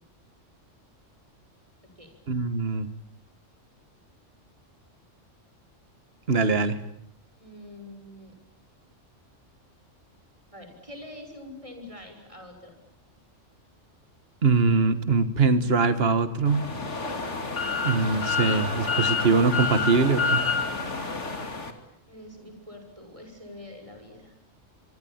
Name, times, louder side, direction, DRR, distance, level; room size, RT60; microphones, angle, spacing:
voice 1, 2.3-2.9 6.3-6.8 14.4-16.7 17.8-20.4, right 4 dB, 50° right, 11 dB, 1.8 m, -22 dB
voice 2, 7.4-8.3 10.5-12.8 22.1-24.3, left 1 dB, 25° right, 5 dB, 6.6 m, -45 dB
sound 1, 16.5-21.7, left 4 dB, 65° left, 3.0 m, -28 dB
26.5 x 24.0 x 8.8 m, 0.73 s
omnidirectional pair, 1.3 m